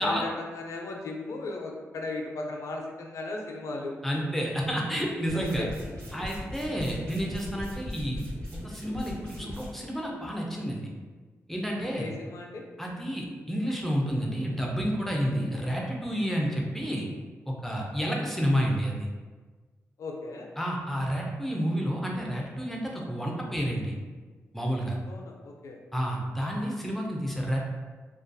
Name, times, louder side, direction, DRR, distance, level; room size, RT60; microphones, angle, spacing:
voice 1, 0.0-3.9 5.3-5.7 11.7-12.6 20.0-20.5 25.1-25.8, left 2 dB, 70° left, 1 dB, 0.4 m, -36 dB
voice 2, 4.0-5.7 6.1-8.2 8.6-10.9 11.5-12.1 12.8-17.1 17.5-19.1 20.6-24.0 24.5-25.0 25.9-27.6, equal, 5° left, -1 dB, 0.5 m, -30 dB
sound 1, 5.3-9.7, left 1 dB, 80° right, 1.3 m, -39 dB
2.3 x 2.3 x 2.5 m, 1.4 s
cardioid pair, 80°, 5 cm